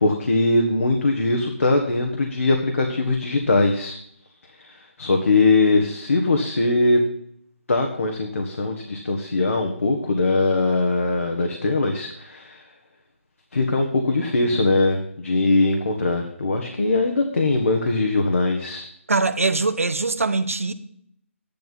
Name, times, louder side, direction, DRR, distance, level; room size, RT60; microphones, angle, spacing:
voice 1, 0.0-4.0 4.6-7.0 7.7-12.6 13.5-18.9, left 2 dB, 75° left, 1.7 m, -21 dB
voice 2, 19.1-20.7, right 3 dB, 85° right, 1.1 m, -22 dB
12.0 x 10.5 x 4.2 m
figure-of-eight pair, 150°, 7 cm